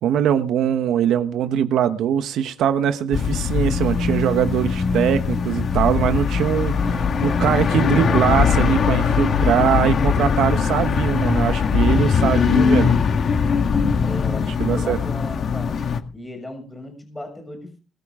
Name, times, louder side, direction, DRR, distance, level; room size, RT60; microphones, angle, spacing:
voice 1, 0.0-13.0 14.6-15.0, right 9 dB, 90° right, 1.1 m, -22 dB
sound 1, 3.1-16.0, left 6 dB, 50° left, 1.6 m, -20 dB
voice 2, 14.0-15.8 16.1-17.8, left 1 dB, 15° left, 6.7 m, -36 dB
21.5 x 14.0 x 3.7 m
cardioid pair, 135°, 0 cm